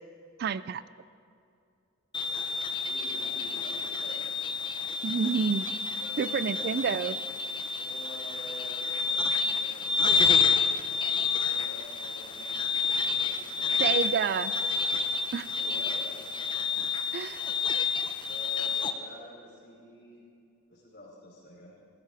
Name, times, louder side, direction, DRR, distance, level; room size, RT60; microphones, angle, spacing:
voice 1, 0.4-0.8 5.0-5.7 6.2-7.2 13.8-14.5 15.3-15.5 17.1-17.4, right 6 dB, 50° right, 16 dB, 0.3 m, -28 dB
sound 1, 2.1-18.9, left 5 dB, 20° left, 0.7 m, -29 dB
voice 2, 2.8-4.5 5.6-6.7 7.8-14.1 15.5-16.2 18.2-20.2 20.7-21.8, left 1 dB, 50° left, -4 dB, 4.7 m, -48 dB
18.0 x 15.0 x 4.9 m, 2.5 s
head